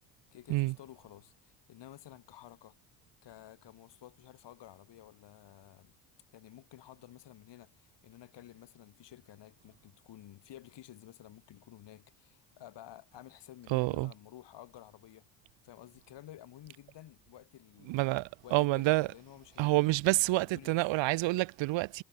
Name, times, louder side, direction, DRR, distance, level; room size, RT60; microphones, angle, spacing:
voice 1, 0.3-2.8 3.2-5.9 6.3-15.3 15.6-18.0 18.4-20.8, left 13 dB, 55° left, 7.1 m, -53 dB
voice 2, 13.7-14.1 17.9-19.1 19.6-22.0, right 20 dB, 60° right, 1.5 m, -28 dB
hypercardioid pair, 65°, 49 cm